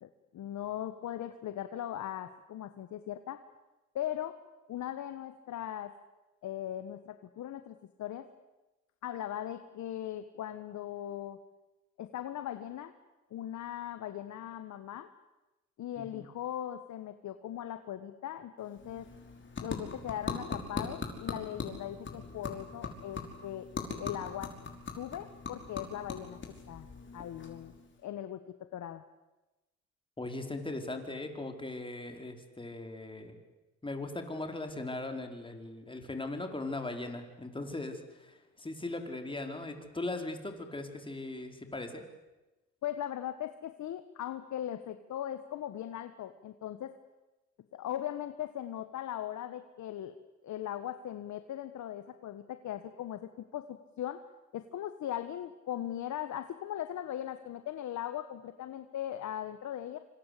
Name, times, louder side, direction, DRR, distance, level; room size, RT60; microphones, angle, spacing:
voice 1, 0.0-3.4 3.9-4.4 4.7-5.9 6.4-8.3 9.0-11.4 12.0-12.9 13.3-15.1 15.8-19.1 19.6-23.7 24.0-24.6 25.0-26.4 26.7-26.9 27.1-27.7 28.0-29.0 42.8-47.0 47.7-50.2 50.4-54.2 54.5-60.0, left 11 dB, 70° left, 10 dB, 1.4 m, -39 dB
voice 2, 16.0-16.3 30.2-33.4 33.8-42.0, left 2 dB, 15° left, 5 dB, 4.6 m, -39 dB
sound 1, 18.6-28.0, left 4 dB, 40° left, 5.6 m, -41 dB
26.5 x 25.5 x 8.5 m, 1.1 s
cardioid pair, 90°, 30 cm